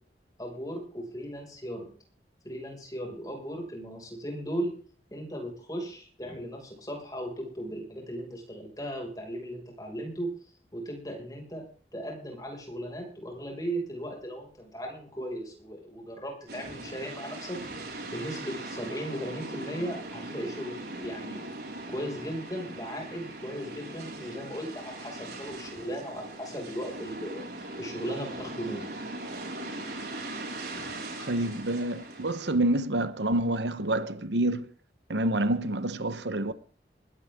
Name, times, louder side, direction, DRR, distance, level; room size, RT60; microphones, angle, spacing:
voice 1, 0.4-1.9 2.4-4.7 5.1-10.3 10.7-11.6 11.9-17.6 18.1-21.5 21.9-27.4 27.8-28.9 31.2-31.3, equal, 20° left, 6.0 m, -37 dB
sound 1, 16.5-32.5, right 2 dB, 70° right, 5.1 m, -40 dB
voice 2, 31.3-34.7 35.1-36.5, right 1 dB, 90° right, 1.2 m, -27 dB
20.0 x 16.0 x 3.8 m
head